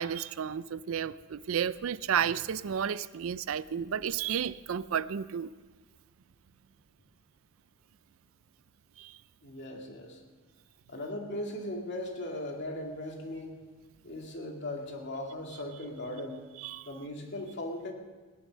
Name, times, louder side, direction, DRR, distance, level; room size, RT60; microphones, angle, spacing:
voice 1, 0.0-5.5 9.0-9.2 16.6-16.9, right 8 dB, 70° right, 17 dB, 0.4 m, -32 dB
voice 2, 9.4-10.2 10.9-13.6 14.0-16.4 16.9-17.9, left 1 dB, 55° left, 1 dB, 2.4 m, -38 dB
17.5 x 11.0 x 6.4 m, 1.3 s
head